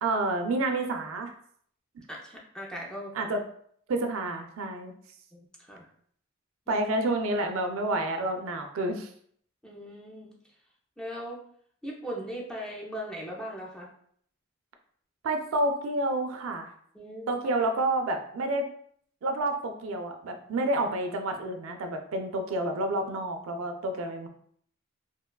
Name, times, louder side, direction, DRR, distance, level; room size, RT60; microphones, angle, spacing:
voice 1, 0.0-1.3 3.1-3.4 3.9-4.9 6.7-9.1 15.2-16.7 17.3-18.7 19.2-24.3, right 2 dB, 70° right, 5 dB, 0.4 m, -29 dB
voice 2, 2.1-3.1 5.3-5.9 6.7-6.9 9.6-10.3 11.0-11.4 11.8-13.9 16.9-17.4, equal, 5° left, -3 dB, 0.4 m, -39 dB
2.8 x 2.2 x 2.2 m, 0.62 s
head